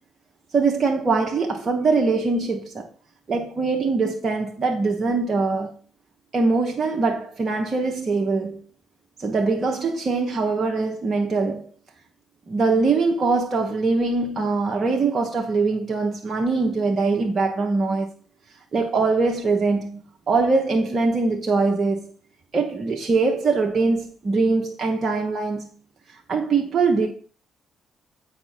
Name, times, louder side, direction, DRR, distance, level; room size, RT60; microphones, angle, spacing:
voice 1, 0.5-2.9 3.3-5.7 6.3-8.6 9.2-11.7 12.5-18.1 18.7-22.1 22.5-25.6 26.3-27.1, right 3 dB, 40° right, 0.9 m, -22 dB
7.9 x 5.0 x 4.3 m
figure-of-eight pair, 40°, 0 cm